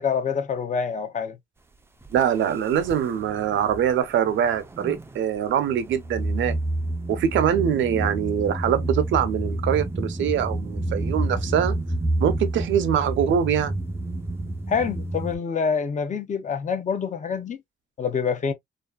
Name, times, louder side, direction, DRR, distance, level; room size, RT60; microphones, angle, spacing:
voice 1, 0.0-1.4 14.7-17.6 18.0-18.5, left 6 dB, 40° left, 0.6 m, -26 dB
sound 1, 2.1-2.2 2.7-3.8 4.2-5.2 5.7-15.4, right 1 dB, 10° right, 0.4 m, -29 dB
voice 2, 2.1-6.5 7.1-11.7 12.2-13.8, right 9 dB, 70° right, 0.6 m, -23 dB
2.6 x 2.3 x 2.2 m
cardioid pair, 90°, 20 cm